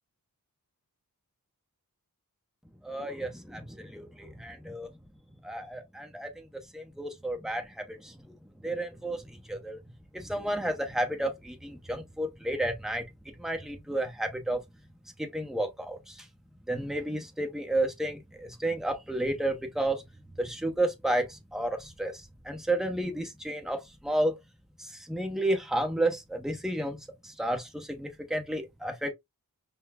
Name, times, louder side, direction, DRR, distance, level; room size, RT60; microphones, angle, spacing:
voice 1, 2.8-4.9 5.4-6.5 6.7-9.8 10.1-14.6 15.2-16.3 16.7-20.0 20.4-24.4 24.8-29.1, right 1 dB, ahead, 0.9 m, -32 dB
5.3 x 2.3 x 2.4 m
wide cardioid pair, 60°, 36 cm